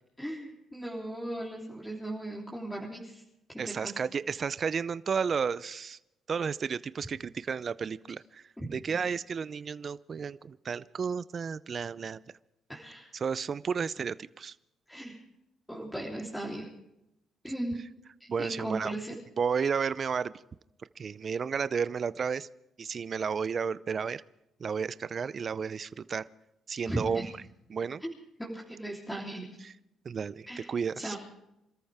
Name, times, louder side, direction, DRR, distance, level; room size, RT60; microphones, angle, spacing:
voice 1, 0.2-3.2 3.6-4.0 8.6-8.7 12.7-13.1 14.9-15.2 15.7-16.7 17.4-17.8 18.4-19.2 26.9-27.3 28.0-29.5 30.5-30.7 31.0-31.2, right 1 dB, 5° left, -4 dB, 3.5 m, -37 dB
voice 2, 3.6-6.0 6.3-8.4 8.7-12.2 13.1-14.5 18.3-18.9 19.4-20.3 21.0-22.5 22.8-24.2 24.6-26.3 26.7-27.3 27.7-28.0 29.6-29.7 30.1-31.2, right 6 dB, 45° right, 17 dB, 0.5 m, -32 dB
27.0 x 13.5 x 3.5 m, 0.84 s
cardioid pair, 90°, 0 cm